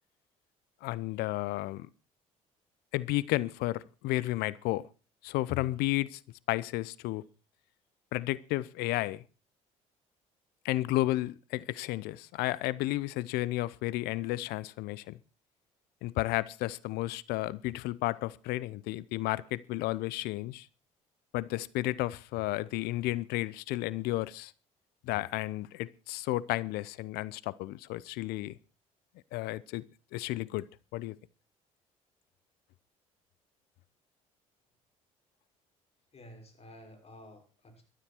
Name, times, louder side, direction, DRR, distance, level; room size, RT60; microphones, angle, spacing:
voice 1, 0.8-1.9 2.9-4.9 5.2-6.2 6.5-7.2 8.1-9.2 10.6-15.2 16.0-20.7 21.3-24.5 25.0-28.6 29.3-29.8 30.1-30.7 30.9-31.2, left 17 dB, 65° left, 0.7 m, -32 dB
voice 2, 36.1-37.8, left 1 dB, 35° left, 6.5 m, -52 dB
16.5 x 13.0 x 4.6 m
hypercardioid pair, 55°, 17 cm